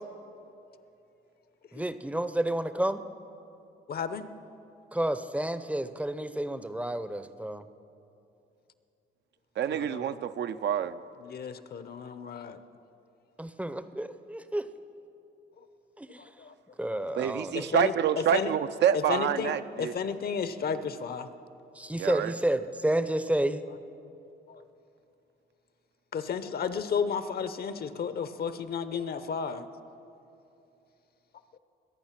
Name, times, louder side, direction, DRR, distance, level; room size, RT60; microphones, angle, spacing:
voice 1, 1.7-3.0 4.9-7.6 13.4-14.7 16.0-16.2 16.8-17.7 21.8-23.6, right 1 dB, 5° right, 12 dB, 0.6 m, -30 dB
voice 2, 3.9-4.3 9.7-10.2 11.2-12.6 16.2-16.5 16.9-17.0 17.5-18.5 18.9-19.5 19.8-21.3 24.5-24.6 26.1-29.6, left 6 dB, 50° left, 12 dB, 0.8 m, -33 dB
voice 3, 9.6-11.0 17.2-19.9 22.0-22.3, right 9 dB, 60° right, 11 dB, 0.5 m, -27 dB
21.5 x 8.7 x 5.9 m, 2.7 s
cardioid pair, 90°, 20 cm